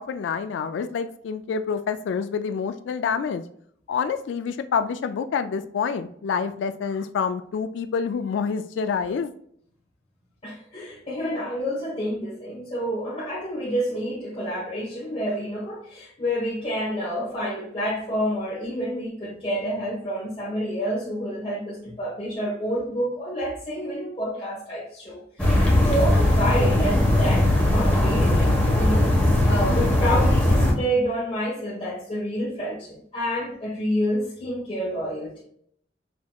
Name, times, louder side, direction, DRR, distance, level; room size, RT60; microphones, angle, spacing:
voice 1, 0.0-3.4 3.9-9.3, left 6 dB, 85° left, 10 dB, 0.3 m, -27 dB
voice 2, 10.4-29.1 29.5-35.4, equal, 30° left, -8 dB, 1.1 m, -28 dB
sound 1, 25.4-30.7, left 1 dB, 10° left, 1.2 m, -19 dB
6.0 x 2.9 x 2.3 m, 0.66 s
head